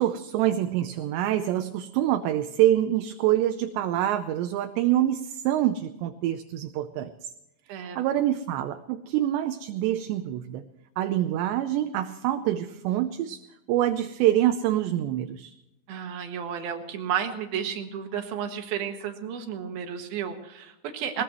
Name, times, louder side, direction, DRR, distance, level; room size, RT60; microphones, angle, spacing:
voice 1, 0.0-7.1 7.7-10.6 11.0-13.4 13.7-15.5 21.1-21.2, right 12 dB, 80° right, 7 dB, 2.8 m, -26 dB
voice 2, 7.7-8.0 15.9-21.2, right 8 dB, 60° right, 5 dB, 3.0 m, -32 dB
21.0 x 20.5 x 3.1 m, 0.90 s
omnidirectional pair, 5.4 m